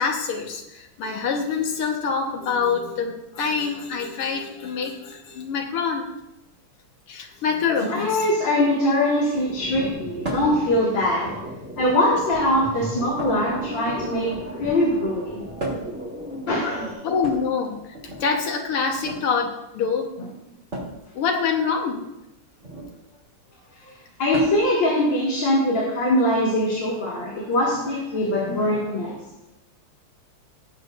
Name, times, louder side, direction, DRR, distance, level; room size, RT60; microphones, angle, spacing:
voice 1, 0.0-6.1 7.1-8.3 17.0-17.8 18.1-20.1 21.1-22.0, left 5 dB, 85° left, 3 dB, 2.2 m, -25 dB
voice 2, 7.9-11.3 11.8-14.3 14.6-15.4 16.5-16.9 24.2-29.2, left 1 dB, 55° left, -5 dB, 2.7 m, -22 dB
sound 1, 9.3-16.9, equal, 5° right, 1.6 m, -36 dB
sound 2, 10.2-10.6 11.6-12.1 13.2-14.3 15.6-16.0 17.1-18.2 18.9-19.2 20.7-21.0 22.6-22.9 24.3-24.7 26.2-26.3 27.5-27.6, right 1 dB, 30° right, 3.1 m, -33 dB
19.0 x 7.8 x 2.6 m, 0.92 s
omnidirectional pair, 2.4 m